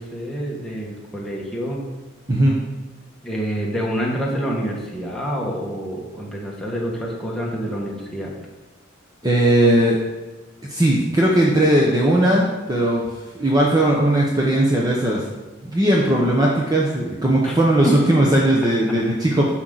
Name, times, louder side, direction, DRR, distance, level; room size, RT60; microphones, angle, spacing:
voice 1, 0.0-1.8 3.2-8.3 17.4-17.5 17.8-18.0, equal, ahead, -4 dB, 1.5 m, -27 dB
voice 2, 9.2-10.0 10.7-13.0 13.3-15.2 15.6-19.5, right 1 dB, 20° right, -3 dB, 0.9 m, -18 dB
10.0 x 6.3 x 4.0 m, 1.2 s
head